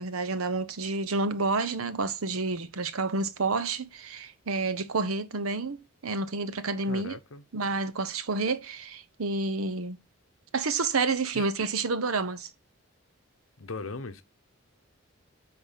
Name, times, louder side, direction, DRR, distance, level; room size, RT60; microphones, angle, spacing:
voice 1, 0.0-7.2 7.5-10.0 10.5-12.5, right 3 dB, 85° right, 0.9 m, -29 dB
voice 2, 6.8-7.4 11.3-11.5 13.6-14.2, left 3 dB, 70° left, 1.0 m, -38 dB
9.4 x 3.9 x 5.6 m
head